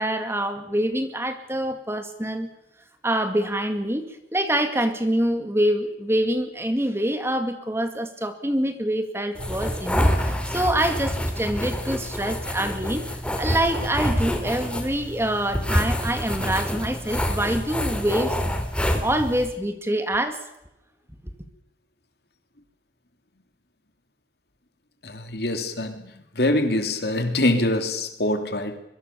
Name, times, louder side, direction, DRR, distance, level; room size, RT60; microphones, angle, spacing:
voice 1, 0.0-2.5 3.0-13.0 13.4-18.3 19.0-20.4 21.2-21.3, right 1 dB, 15° right, 2.1 m, -25 dB
sound 1, 9.4-19.5, equal, 5° left, 3.1 m, -27 dB
voice 2, 25.0-28.8, left 1 dB, 60° left, 3.1 m, -24 dB
24.0 x 23.0 x 6.9 m
head